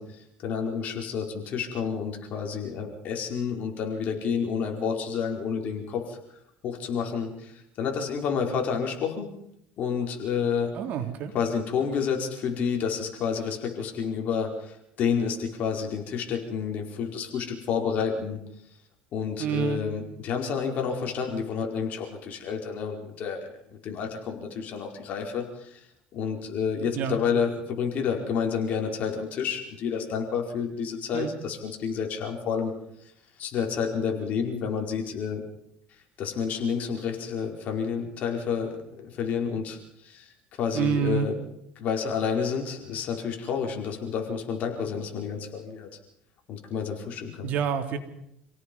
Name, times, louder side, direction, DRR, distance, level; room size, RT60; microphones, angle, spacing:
voice 1, 0.0-6.2 6.6-9.4 9.8-10.8 11.3-18.4 19.1-25.8 26.1-32.7 33.0-33.1 33.4-35.5 36.2-40.3 40.6-41.4 41.8-45.9 46.5-47.5, left 6 dB, 50° left, 1 dB, 5.0 m, -30 dB
voice 2, 10.7-11.3 19.4-19.8 26.9-27.2 31.1-31.3 40.7-41.3 47.4-48.0, right 8 dB, 55° right, 5 dB, 3.3 m, -27 dB
28.5 x 17.5 x 5.5 m, 0.76 s
supercardioid pair, 115°, 3 cm